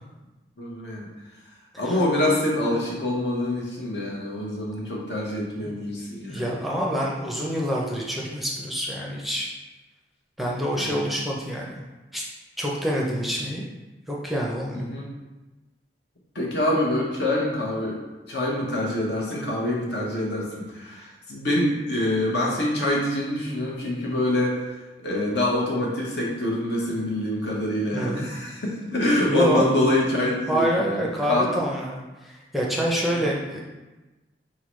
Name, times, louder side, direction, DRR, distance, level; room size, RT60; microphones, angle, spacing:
voice 1, 0.6-1.1 1.8-6.4 10.8-11.0 14.7-15.1 16.3-18.0 18.3-24.6 25.0-31.5 33.1-33.2, left 1 dB, 70° left, -4 dB, 1.1 m, -25 dB
voice 2, 6.3-9.5 10.4-11.8 12.1-12.2 12.6-13.7 14.1-14.9 27.9-28.3 29.3-29.7 30.5-33.6, equal, ahead, -3 dB, 0.5 m, -26 dB
4.2 x 3.8 x 3.1 m, 1.1 s
head